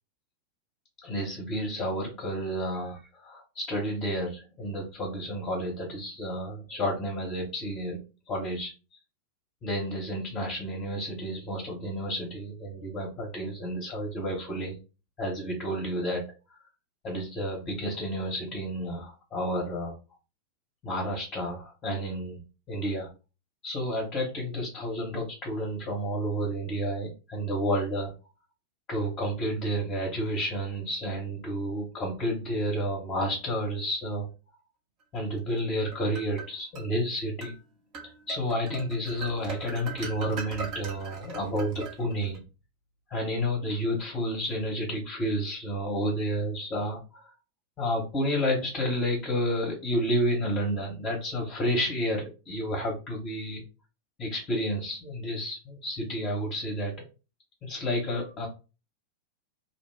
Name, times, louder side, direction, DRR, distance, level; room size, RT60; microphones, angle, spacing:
voice 1, 1.0-8.0 8.3-8.7 9.6-14.8 15.2-16.2 16.5-16.6 17.0-20.0 20.8-23.1 23.6-28.1 28.9-34.3 35.1-37.5 38.3-42.4 43.1-47.3 47.8-53.6 54.2-56.9 57.6-58.5, equal, 25° left, -2 dB, 1.0 m, -31 dB
sound 1, 35.6-36.9 37.4-37.6 37.9-42.4, right 4 dB, 40° right, 0.9 m, -40 dB
2.6 x 2.2 x 3.4 m, 0.31 s
figure-of-eight pair, 90°, 0 cm